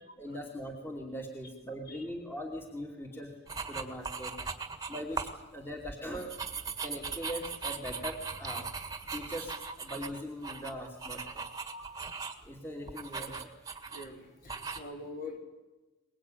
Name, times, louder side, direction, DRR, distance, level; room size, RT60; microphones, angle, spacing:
voice 1, 0.2-3.4 3.7-4.3 4.9-6.3 6.8-8.7 9.1-11.5 11.7-12.0 12.4-13.5, equal, 10° left, 1 dB, 2.7 m, -41 dB
sound 1, 3.5-5.4 5.8-12.5 12.9-14.1 14.5-14.8, right 5 dB, 20° right, 1.9 m, -39 dB
voice 2, 13.9-15.4, left 2 dB, 45° left, 3 dB, 4.2 m, -44 dB
23.5 x 21.0 x 9.3 m, 1.1 s
head